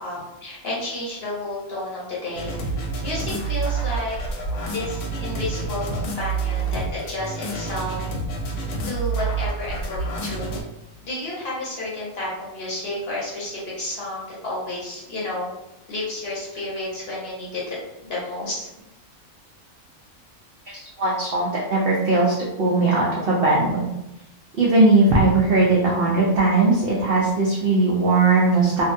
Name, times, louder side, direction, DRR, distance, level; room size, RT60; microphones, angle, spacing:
voice 1, 0.0-2.6 3.0-4.2 4.6-8.0 8.8-10.6 11.0-15.5 15.9-18.7, left 2 dB, 50° left, -6 dB, 0.9 m, -31 dB
sound 1, 2.3-10.6, right 4 dB, 85° left, 1.1 m, -28 dB
voice 2, 21.0-23.9 24.6-28.8, right 3 dB, 70° right, -5 dB, 0.5 m, -19 dB
2.6 x 2.1 x 2.5 m, 0.92 s
omnidirectional pair, 1.5 m